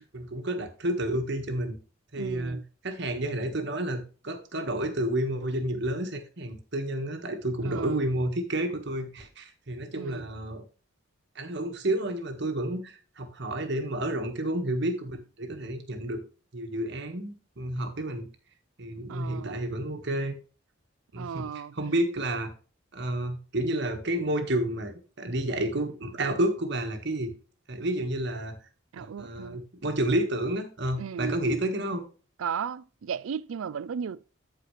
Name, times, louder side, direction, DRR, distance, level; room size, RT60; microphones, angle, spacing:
voice 1, 0.0-1.8 2.1-10.6 11.3-16.2 16.5-18.3 18.8-20.3 21.1-21.5 21.7-22.5 22.9-27.3 27.7-28.5 29.0-32.1, right 1 dB, 60° right, 1.5 m, -30 dB
voice 2, 2.2-2.6 7.6-8.0 9.9-10.3 19.1-19.6 21.2-21.7 28.9-29.6 31.0-31.4 32.4-34.2, right 7 dB, 85° right, 0.4 m, -35 dB
13.5 x 4.7 x 3.2 m
head